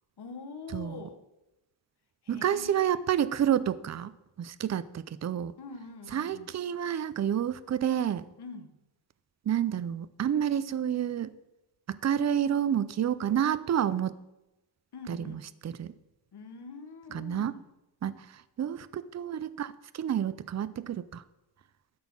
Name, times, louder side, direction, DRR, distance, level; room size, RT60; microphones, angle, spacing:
voice 1, 0.2-1.2 2.2-2.9 5.6-6.5 8.4-8.8 14.9-15.5 16.3-17.7, left 4 dB, 60° left, 7 dB, 1.1 m, -44 dB
voice 2, 0.7-1.0 2.3-4.1 4.4-5.5 6.1-8.3 9.5-11.3 11.9-14.2 15.1-15.9 17.1-17.5 18.0-21.2, right 9 dB, 40° right, 16 dB, 0.4 m, -29 dB
12.5 x 4.3 x 7.2 m, 0.95 s
wide cardioid pair, 110°, 43 cm